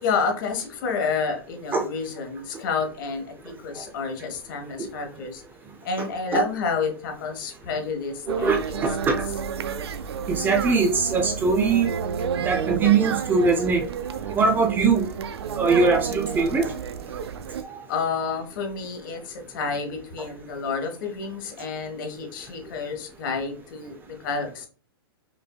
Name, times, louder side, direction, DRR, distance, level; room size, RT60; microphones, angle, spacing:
voice 1, 0.0-5.4 5.8-9.1 17.9-24.7, left 4 dB, 55° left, 3 dB, 1.3 m, -29 dB
voice 2, 8.3-9.2 10.3-11.9 12.4-13.8 14.3-15.1 15.6-16.7 17.7-17.8, right 4 dB, 15° right, 3 dB, 0.5 m, -21 dB
sound 1, 8.3-17.6, right 7 dB, 85° right, 0.4 m, -30 dB
5.2 x 2.6 x 2.2 m, 0.41 s
hypercardioid pair, 140°, 13 cm